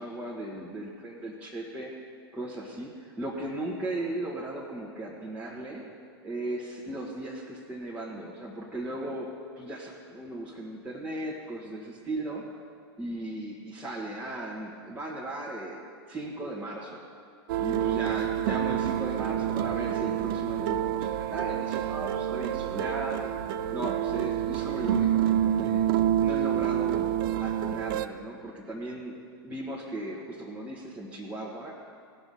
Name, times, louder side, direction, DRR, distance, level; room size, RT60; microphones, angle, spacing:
voice 1, 0.0-1.9 2.3-5.8 6.2-9.3 9.6-12.4 13.0-17.0 17.6-23.3 23.7-25.8 26.2-27.0 27.4-29.2 29.4-31.7, right 1 dB, 10° right, -6 dB, 1.4 m, -37 dB
sound 1, 17.5-28.1, right 11 dB, 60° right, 0.5 m, -28 dB
16.5 x 6.0 x 5.5 m, 2.2 s
hypercardioid pair, 115°, 13 cm